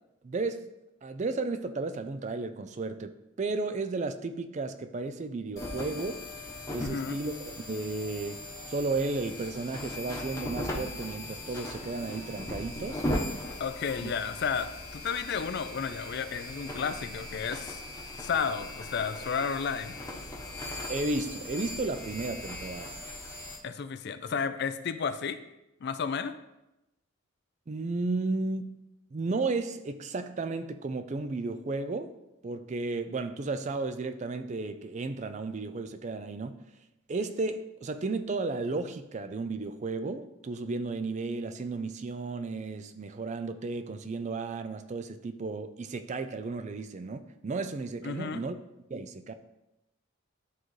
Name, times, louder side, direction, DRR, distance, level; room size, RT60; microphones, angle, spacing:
voice 1, 0.2-0.7 1.0-6.2 6.7-8.4 8.7-13.1 14.0-14.1 20.9-23.0 27.7-28.8 29.1-32.1 32.4-36.6 37.1-48.6 48.9-49.3, right 3 dB, 35° right, 0.3 m, -33 dB
sound 1, 5.6-23.6, left 1 dB, 15° left, 1.0 m, -38 dB
voice 2, 6.8-7.2 13.6-17.8 18.2-20.0 23.6-25.4 25.8-26.4 48.0-48.4, left 6 dB, 50° left, 0.4 m, -32 dB
11.0 x 3.9 x 3.2 m
head